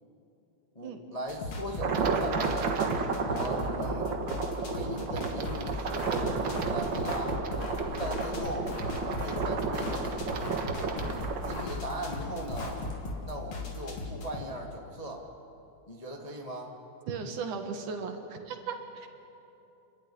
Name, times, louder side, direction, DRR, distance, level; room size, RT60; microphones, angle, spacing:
voice 1, 0.7-2.7 3.2-4.1 4.7-7.4 7.9-10.1 11.4-12.8 13.2-15.2 15.9-16.7, right 1 dB, 20° left, 0 dB, 1.0 m, -38 dB
sound 1, 1.3-14.4, left 2 dB, 45° left, 3.0 m, -38 dB
sound 2, 1.8-11.6, right 5 dB, 50° right, 1.6 m, -32 dB
sound 3, 5.3-13.1, left 2 dB, 80° left, 4.7 m, -43 dB
voice 2, 17.1-19.1, right 5 dB, 75° right, 5 dB, 3.1 m, -36 dB
29.5 x 12.0 x 9.9 m, 2.9 s
omnidirectional pair, 3.6 m